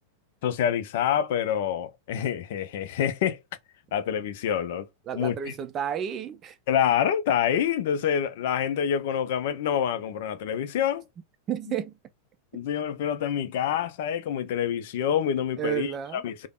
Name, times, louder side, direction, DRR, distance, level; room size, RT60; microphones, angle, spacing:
voice 1, 0.4-3.4 3.9-4.9 5.1-5.5 6.7-11.0 11.7-11.8 12.5-16.5, left 9 dB, 55° left, 0.4 m, -27 dB
voice 2, 5.1-6.6 11.5-11.9 15.6-16.2, right 9 dB, 30° right, 0.4 m, -31 dB
3.3 x 2.0 x 2.3 m
figure-of-eight pair, 90°, 0 cm